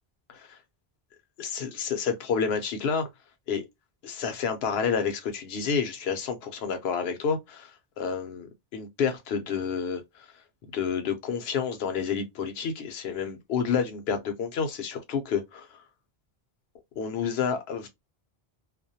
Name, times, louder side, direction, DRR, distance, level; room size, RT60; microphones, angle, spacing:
voice 1, 1.4-3.1 3.5-3.7 4.0-7.7 8.0-10.3 10.7-15.8 17.0-17.9, left 6 dB, 75° left, 0.9 m, -29 dB
2.4 x 2.1 x 2.6 m
omnidirectional pair, 1.1 m